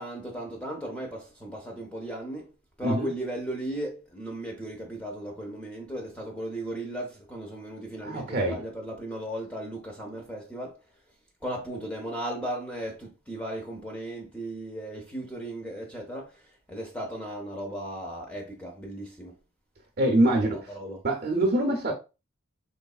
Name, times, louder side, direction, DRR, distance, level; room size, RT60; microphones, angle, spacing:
voice 1, 0.0-2.5 2.8-10.7 11.4-16.3 16.7-19.3 20.2-21.0, right 1 dB, 5° left, 0.6 m, -36 dB
voice 2, 8.0-8.6 20.0-20.5 21.0-21.9, right 1 dB, 45° right, 0.6 m, -24 dB
3.9 x 3.1 x 2.3 m
head